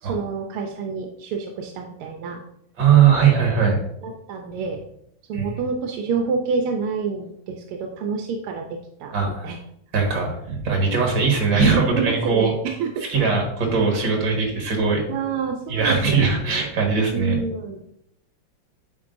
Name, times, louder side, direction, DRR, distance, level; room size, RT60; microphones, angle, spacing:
voice 1, 0.0-2.4 4.0-4.8 5.3-8.6 9.0-9.1 9.4-9.6 11.7-12.9 15.1-16.7 17.1-17.8, right 5 dB, 85° right, 2 dB, 1.6 m, -28 dB
voice 2, 2.8-3.8 5.3-5.5 9.1-9.5 9.9-12.5 13.1-15.0 15.7-17.4, right 5 dB, 60° right, 0 dB, 2.2 m, -20 dB
8.3 x 4.6 x 2.6 m, 0.75 s
omnidirectional pair, 2.4 m